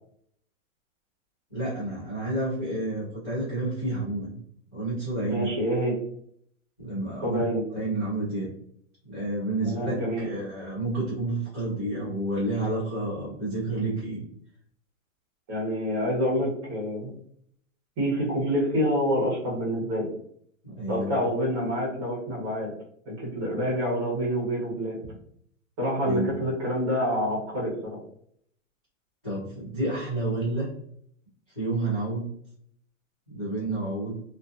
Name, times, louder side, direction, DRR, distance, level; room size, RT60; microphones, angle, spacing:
voice 1, 1.5-4.4 4.7-5.5 6.8-7.4 7.7-8.5 9.0-14.3 20.6-21.2 26.0-26.3 29.2-30.7 31.5-32.3 33.3-34.2, right 2 dB, 20° left, -14 dB, 0.3 m, -30 dB
voice 2, 5.3-6.0 7.2-7.6 9.6-10.3 15.5-17.1 18.0-20.1 20.9-22.7 23.1-25.0 25.8-28.0, equal, 20° right, -6 dB, 0.7 m, -27 dB
2.4 x 2.3 x 2.3 m, 0.67 s
hypercardioid pair, 175°, 40 cm